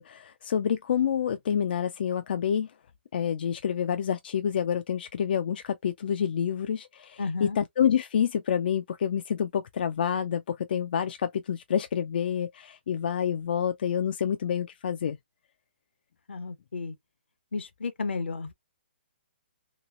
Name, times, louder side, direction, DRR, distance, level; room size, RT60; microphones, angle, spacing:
voice 1, 0.0-2.7 3.1-15.2, left 8 dB, 60° left, 0.3 m, -28 dB
voice 2, 7.2-7.6 16.3-17.0 17.5-18.5, left 4 dB, 80° left, 0.8 m, -33 dB
3.0 x 2.9 x 2.4 m
hypercardioid pair, 140°, 6 cm